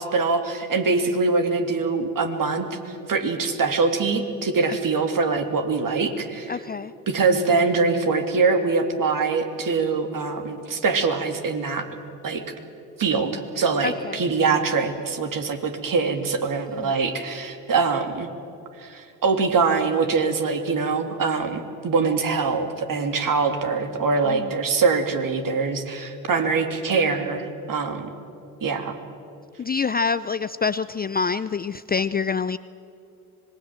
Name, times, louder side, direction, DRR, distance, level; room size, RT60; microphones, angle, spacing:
voice 1, 0.0-2.7 3.1-6.5 7.1-11.9 12.2-12.4 13.0-18.3 18.8-28.1 28.6-29.0, right 4 dB, 45° right, 6 dB, 3.0 m, -23 dB
voice 2, 6.5-6.9 13.8-14.2 16.7-16.9 24.2-24.5 29.6-32.6, left 5 dB, 20° left, 14 dB, 0.5 m, -26 dB
25.5 x 20.0 x 7.7 m, 2.7 s
hypercardioid pair, 60°, 45 cm